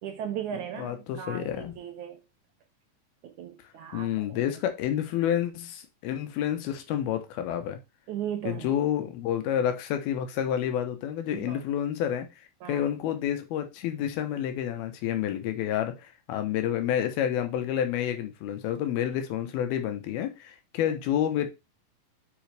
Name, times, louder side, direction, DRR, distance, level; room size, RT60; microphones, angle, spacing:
voice 1, 0.0-2.2 3.2-4.4 8.1-8.8 11.3-11.6 12.6-12.9, right 9 dB, 70° right, 1.9 m, -37 dB
voice 2, 0.8-1.7 3.9-7.8 8.4-12.3 12.7-21.5, left 10 dB, 85° left, 3.0 m, -29 dB
7.8 x 6.2 x 3.4 m
omnidirectional pair, 4.2 m